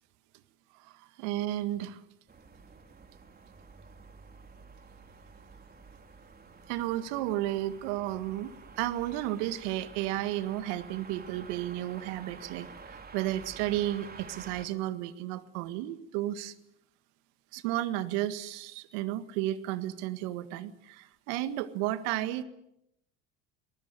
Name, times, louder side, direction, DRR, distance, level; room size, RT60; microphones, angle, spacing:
voice 1, 1.2-1.9 6.7-16.5 17.5-22.4, right 14 dB, 70° right, 11 dB, 1.8 m, -33 dB
sound 1, 2.3-14.7, right 4 dB, 25° right, 3.5 m, -50 dB
24.0 x 20.0 x 9.0 m, 0.80 s
hypercardioid pair, 70°, 35 cm